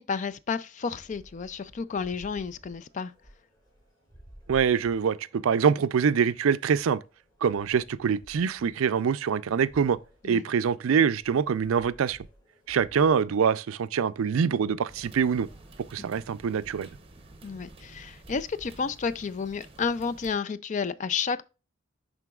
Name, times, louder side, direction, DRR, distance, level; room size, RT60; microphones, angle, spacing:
voice 1, 0.0-3.1 10.2-10.4 17.4-21.4, left 5 dB, 35° left, 0.4 m, -31 dB
sound 1, 0.9-20.0, right 1 dB, 20° left, 3.1 m, -56 dB
voice 2, 4.5-7.0 7.4-10.0 10.2-12.2 12.7-15.5 15.9-16.9, right 6 dB, 85° right, 0.4 m, -24 dB
sound 2, 14.9-20.4, right 2 dB, 25° right, 0.7 m, -51 dB
10.5 x 3.9 x 2.3 m
head